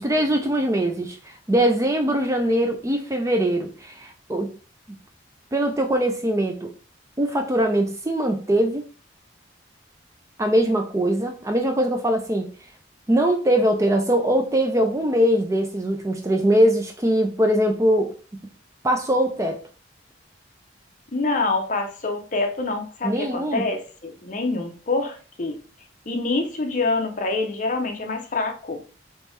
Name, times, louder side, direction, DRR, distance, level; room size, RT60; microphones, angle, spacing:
voice 1, 0.0-4.5 5.5-6.7 7.2-8.8 10.4-12.5 13.1-18.1 18.8-19.6 23.0-23.6, right 1 dB, 15° right, 0.4 m, -22 dB
voice 2, 21.1-25.6 26.1-28.8, left 3 dB, 40° left, 0.6 m, -26 dB
3.4 x 3.1 x 3.1 m
head